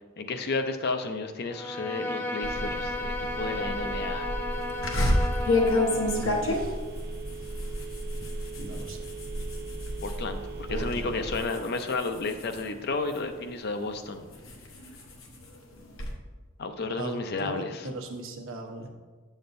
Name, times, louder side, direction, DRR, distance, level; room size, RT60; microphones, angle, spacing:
voice 1, 0.2-4.3 10.0-14.3 16.6-17.9, left 3 dB, 50° left, 7 dB, 0.5 m, -32 dB
Bowed string instrument, 1.5-6.4, left 2 dB, 10° left, 0.6 m, -34 dB
Telephone, 2.4-11.4, right 2 dB, 50° right, 0.5 m, -36 dB
sound 1, 4.8-10.2 10.6-11.0 11.3-13.4 13.9-16.1, left 2 dB, 75° left, 1.0 m, -29 dB
voice 2, 6.2-6.8 8.6-9.0 10.7-11.3 17.0-18.9, right 1 dB, 80° right, 2 dB, 0.9 m, -38 dB
7.7 x 7.1 x 2.6 m, 1.4 s
head